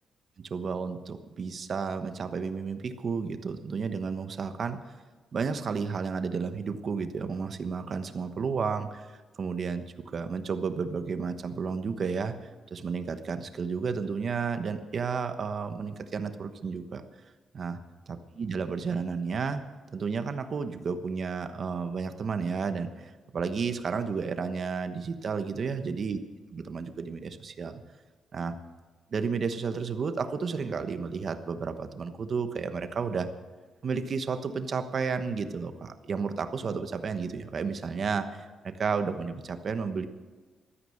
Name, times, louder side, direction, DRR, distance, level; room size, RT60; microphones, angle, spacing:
voice 1, 0.5-4.8 5.3-9.8 10.1-17.0 17.5-17.8 18.1-19.6 19.9-26.2 26.5-27.8 28.3-28.6 29.1-33.3 33.8-40.1, right 5 dB, 40° right, 9 dB, 1.1 m, -32 dB
15.0 x 13.0 x 6.5 m, 1.4 s
cardioid pair, 145°, 0 cm